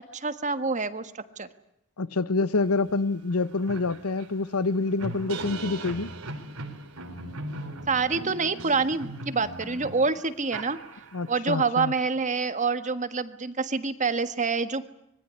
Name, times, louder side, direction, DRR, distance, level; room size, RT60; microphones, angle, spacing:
voice 1, 0.1-1.5 7.9-10.8 11.3-14.8, right 4 dB, 35° right, 1.5 m, -27 dB
voice 2, 2.0-6.1 11.1-11.9, left 3 dB, 90° left, 1.1 m, -27 dB
sound 1, 2.9-3.0 3.3-11.4, right 2 dB, 80° right, 3.8 m, -39 dB
25.5 x 21.5 x 9.8 m
head